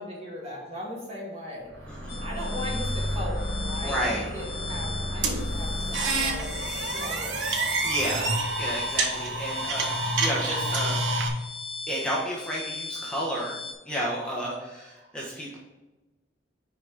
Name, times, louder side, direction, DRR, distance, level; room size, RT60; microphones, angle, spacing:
voice 1, 0.0-7.5 14.2-14.5 15.0-15.4, equal, 35° right, -4 dB, 2.4 m, -38 dB
sound 1, 1.6-10.0, equal, 65° right, 2.0 m, -34 dB
voice 2, 1.9-2.2 3.8-4.2 7.8-11.0 11.9-13.6 13.8-15.6, equal, 5° left, -5 dB, 1.3 m, -31 dB
sound 2, 2.1-13.7, left 4 dB, 70° left, 1.4 m, -38 dB
sound 3, 5.2-11.3, right 3 dB, 90° right, 1.2 m, -28 dB
6.2 x 5.2 x 5.2 m, 1.1 s
head